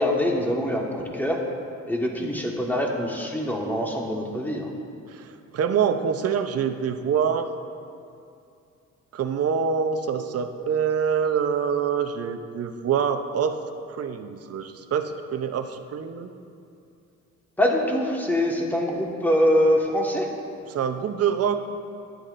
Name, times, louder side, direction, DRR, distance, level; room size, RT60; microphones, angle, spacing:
voice 1, 0.0-1.4 1.9-4.7 17.6-20.3, equal, 5° left, -1 dB, 1.5 m, -24 dB
voice 2, 5.1-7.6 9.1-13.6 13.9-16.3 20.7-21.6, right 7 dB, 55° right, 8 dB, 0.7 m, -25 dB
13.0 x 10.5 x 2.6 m, 2.5 s
cardioid pair, 90°, 30 cm